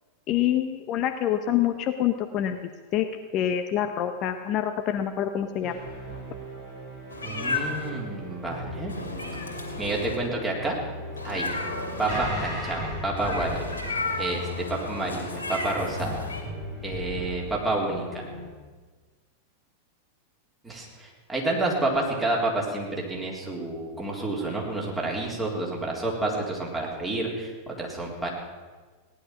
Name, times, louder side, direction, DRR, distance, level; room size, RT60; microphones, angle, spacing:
voice 1, 0.3-2.6 2.9-3.1 3.3-5.7, left 11 dB, 35° left, 7 dB, 0.8 m, -26 dB
sound 1, 5.6-18.4, equal, 50° right, 6.4 m, -37 dB
Meow, 7.1-7.9 8.9-10.2 11.2-12.2 13.2-16.4, left 3 dB, 75° left, 2.6 m, -33 dB
voice 2, 7.2-8.9 9.8-10.7 11.2-11.5 12.0-13.6 14.2-16.3 16.8-18.2 20.6-28.3, right 2 dB, 10° right, -2 dB, 3.8 m, -29 dB
17.5 x 11.0 x 6.1 m, 1.4 s
figure-of-eight pair, 90°, 0 cm